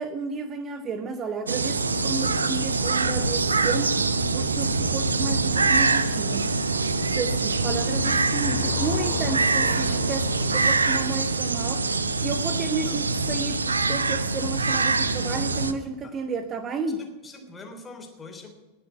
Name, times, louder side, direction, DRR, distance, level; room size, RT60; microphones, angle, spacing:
voice 1, 0.0-4.0 4.3-6.5 7.1-11.9 12.2-17.0, right 4 dB, 25° right, 11 dB, 1.0 m, -32 dB
sound 1, 1.5-15.7, right 3 dB, 75° right, 0.8 m, -24 dB
Car passing by, 5.8-12.9, left 6 dB, 65° left, 2.3 m, -38 dB
voice 2, 17.0-18.5, left 3 dB, 15° left, 3 dB, 3.3 m, -43 dB
19.5 x 6.8 x 9.8 m, 1.2 s
figure-of-eight pair, 90°, 0 cm